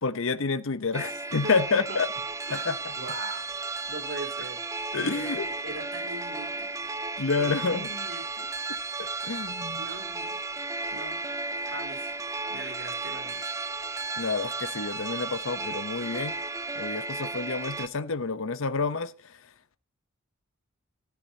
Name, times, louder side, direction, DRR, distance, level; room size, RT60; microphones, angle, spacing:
voice 1, 0.0-2.1 2.5-2.9 4.9-5.5 7.2-7.9 9.0-9.9 14.2-16.4 16.8-19.4, left 4 dB, 65° left, 0.9 m, -29 dB
sound 1, 0.9-17.9, right 3 dB, 15° right, 0.5 m, -34 dB
voice 2, 1.4-2.0 2.5-3.5 3.9-4.6 4.9-6.7 7.4-8.5 9.8-10.4 10.9-11.2 11.6-12.1 12.5-13.6, right 2 dB, 65° right, 3.9 m, -40 dB
14.0 x 13.5 x 2.9 m
head